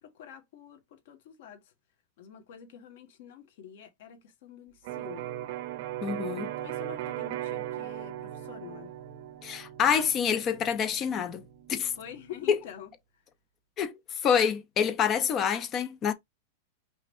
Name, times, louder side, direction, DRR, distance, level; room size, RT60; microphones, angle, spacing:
voice 1, 0.0-1.7 2.2-5.3 6.6-8.9 12.0-12.9, left 9 dB, 55° left, 1.8 m, -47 dB
Electric guitar, 4.8-12.6, right 13 dB, 45° right, 0.7 m, -38 dB
voice 2, 6.0-6.5 9.4-11.4 11.7-11.9 12.5-12.6 13.8-16.1, left 7 dB, 20° left, 0.6 m, -27 dB
5.6 x 3.3 x 2.7 m
supercardioid pair, 170°, 0 cm